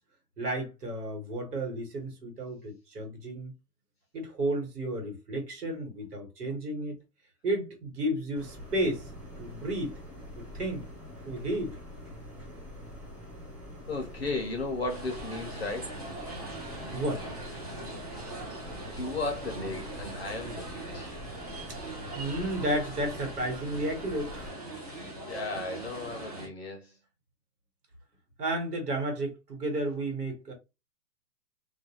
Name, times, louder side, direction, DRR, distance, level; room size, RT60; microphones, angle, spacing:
voice 1, 0.4-3.5 4.1-7.0 7.4-9.1 9.4-10.0 10.4-10.9 11.2-11.8 16.9-17.3 21.7-21.8 22.1-24.3 28.4-30.5, right 1 dB, 70° right, 1.4 m, -32 dB
sound 1, 8.3-24.5, equal, 5° right, 0.9 m, -45 dB
voice 2, 13.9-16.0 18.8-21.1 25.2-27.0, left 2 dB, 40° left, 0.6 m, -35 dB
sound 2, 14.9-26.5, right 1 dB, 25° right, 0.6 m, -41 dB
2.5 x 2.2 x 2.9 m
hypercardioid pair, 175°, 49 cm